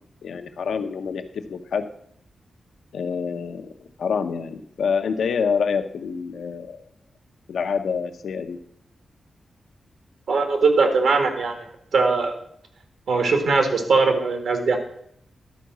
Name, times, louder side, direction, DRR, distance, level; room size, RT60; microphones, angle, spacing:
voice 1, 0.0-1.9 2.9-6.8 7.5-8.6, left 6 dB, 80° left, 7 dB, 0.8 m, -27 dB
voice 2, 10.3-11.6 11.9-12.3 13.1-14.8, right 4 dB, 75° right, 5 dB, 1.7 m, -20 dB
11.5 x 4.7 x 6.1 m, 0.70 s
wide cardioid pair, 145°, 0 cm